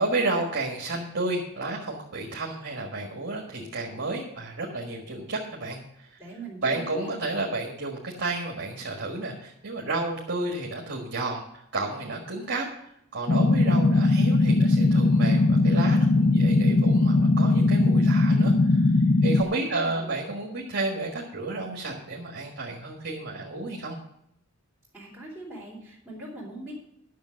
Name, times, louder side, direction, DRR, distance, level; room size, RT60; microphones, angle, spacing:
voice 1, 0.0-6.2 6.6-18.9 19.2-24.0, right 2 dB, 55° right, 0 dB, 1.6 m, -31 dB
voice 2, 6.2-7.1 19.4-20.1 24.9-26.7, right 2 dB, ahead, -10 dB, 3.4 m, -41 dB
sound 1, 13.3-19.4, left 2 dB, 45° left, 0.5 m, -20 dB
10.5 x 6.6 x 6.4 m, 0.79 s
head